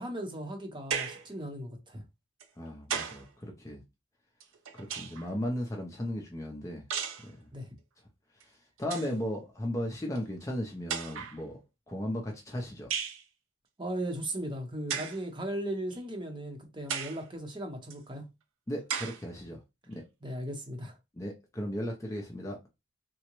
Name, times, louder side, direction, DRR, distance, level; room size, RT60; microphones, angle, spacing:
voice 1, 0.0-2.0 7.5-7.7 13.8-18.3 20.2-21.0, right 1 dB, 25° right, 0.7 m, -37 dB
sound 1, 0.9-1.3 2.4-3.3 4.4-5.3 6.9-7.3 8.4-8.5 8.8-9.2 10.2-10.3 10.9-11.4 12.9-13.2 14.9-15.2 15.9-16.0 16.9-17.2 17.9-18.0 18.9-19.2, right 7 dB, 85° right, 0.5 m, -35 dB
voice 2, 2.6-3.8 4.7-6.8 7.2-7.5 8.5-11.6 11.9-12.9 18.7-19.6 19.9-20.0 21.1-22.6, left 1 dB, 15° left, 0.5 m, -36 dB
3.6 x 2.1 x 2.9 m
head